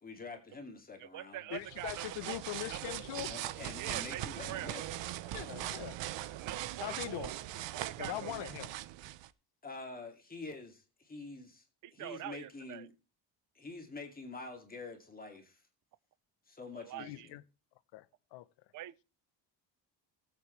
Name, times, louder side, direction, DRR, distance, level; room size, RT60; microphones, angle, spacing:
voice 1, 0.0-1.5 3.2-4.9 9.6-11.6 11.9-12.9 13.5-15.6 16.5-17.4, left 3 dB, 20° left, 2.4 m, -46 dB
voice 2, 1.0-2.4 2.7-2.8 3.8-4.8 6.4-7.4 7.7-8.5 11.8-12.8 16.7-17.3 18.7-19.0, right 14 dB, 45° right, 0.6 m, -44 dB
voice 3, 1.5-3.3 5.3-6.0 6.8-7.3 8.0-8.7 17.0-17.4 17.9-18.1 18.3-18.5, left 15 dB, 75° left, 1.0 m, -41 dB
sound 1, 1.5-9.3, right 14 dB, 80° right, 0.9 m, -41 dB
19.0 x 8.1 x 3.2 m
cardioid pair, 160°, 43 cm